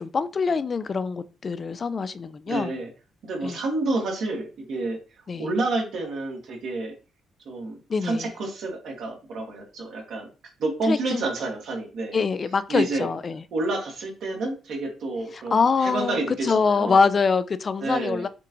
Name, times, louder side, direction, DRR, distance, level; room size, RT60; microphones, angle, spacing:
voice 1, 0.0-2.7 3.4-3.6 5.3-5.5 7.9-8.3 10.9-11.2 12.1-13.4 15.3-18.3, left 5 dB, 40° left, 0.3 m, -24 dB
voice 2, 2.5-2.9 3.2-5.0 5.4-6.9 7.4-10.3 10.6-12.2 12.7-13.0 13.5-17.0 17.8-18.3, right 2 dB, 70° right, 1.6 m, -29 dB
5.9 x 2.4 x 3.0 m
cardioid pair, 90°, 0 cm